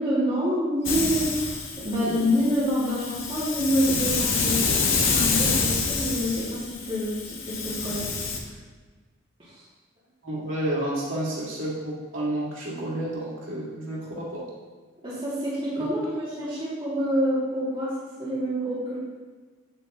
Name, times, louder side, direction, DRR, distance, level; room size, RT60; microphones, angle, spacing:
voice 1, 0.0-4.8 5.1-8.4 9.5-9.6 15.0-17.9 18.2-19.0, equal, 25° right, -12 dB, 2.4 m, -27 dB
Hiss, 0.9-8.4, left 4 dB, 80° left, 1.3 m, -27 dB
voice 2, 10.2-14.4 15.8-15.9, right 1 dB, 80° right, -6 dB, 2.3 m, -30 dB
8.8 x 8.3 x 3.0 m, 1.4 s
head